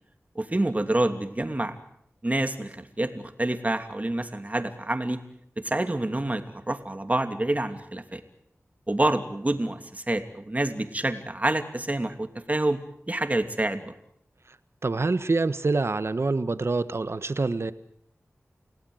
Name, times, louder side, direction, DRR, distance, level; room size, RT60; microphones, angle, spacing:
voice 1, 0.3-1.7 2.2-5.2 5.6-8.2 8.9-12.8 13.1-13.9, right 1 dB, 30° right, 7 dB, 2.8 m, -27 dB
voice 2, 14.8-17.7, right 3 dB, 60° right, 13 dB, 1.4 m, -26 dB
29.5 x 17.5 x 8.0 m, 0.72 s
wide cardioid pair, 55°, 5 cm